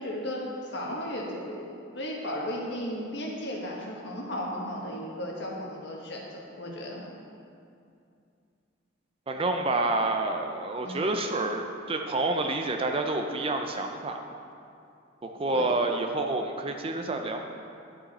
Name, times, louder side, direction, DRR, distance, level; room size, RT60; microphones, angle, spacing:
voice 1, 0.0-7.0 10.8-11.1 15.5-15.7, equal, 55° left, -2 dB, 1.4 m, -35 dB
voice 2, 9.3-14.4 15.2-17.4, right 2 dB, 25° right, 4 dB, 0.4 m, -28 dB
11.5 x 5.6 x 4.2 m, 2.5 s
head